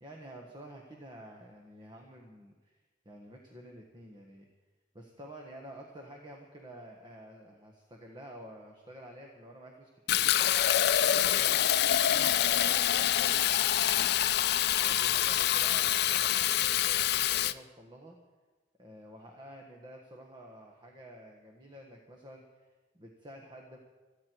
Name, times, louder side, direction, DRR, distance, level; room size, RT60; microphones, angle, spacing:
voice 1, 0.0-4.5 4.9-10.6 11.0-14.1 14.8-18.2 18.8-23.8, right 1 dB, 25° right, 0 dB, 1.5 m, -50 dB
Fill (with liquid), 10.1-17.5, left 11 dB, 60° left, 0.4 m, -26 dB
27.0 x 9.8 x 4.7 m, 1.2 s
head